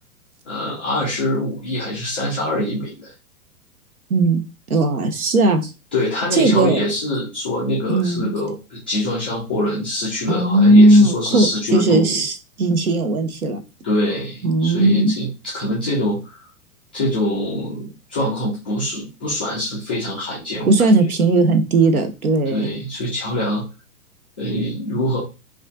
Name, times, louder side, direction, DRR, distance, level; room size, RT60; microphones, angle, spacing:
voice 1, 0.4-3.1 5.9-12.2 13.8-16.4 16.9-20.9 22.5-23.6 24.4-25.2, left 1 dB, 10° left, 0.3 m, -24 dB
voice 2, 4.1-5.7 6.3-6.9 7.9-8.3 10.3-13.6 14.4-15.1 20.7-22.7, right 2 dB, 70° right, 0.9 m, -17 dB
5.2 x 2.5 x 2.4 m
figure-of-eight pair, 105°, 46 cm